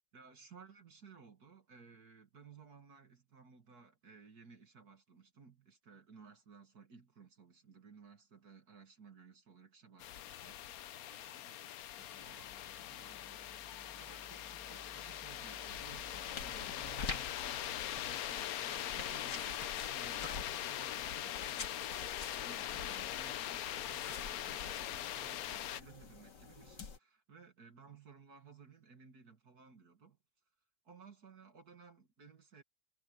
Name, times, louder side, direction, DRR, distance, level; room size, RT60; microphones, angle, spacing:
voice 1, 0.1-11.9 12.2-30.2 30.8-32.6, right 5 dB, 60° right, 2.5 m, -58 dB
sound 1, 10.0-25.8, left 12 dB, 65° left, 1.1 m, -42 dB
sound 2, 12.0-19.1, left 1 dB, 10° left, 0.8 m, -60 dB
sound 3, 15.7-27.0, left 5 dB, 80° left, 2.7 m, -48 dB
omnidirectional pair, 1.8 m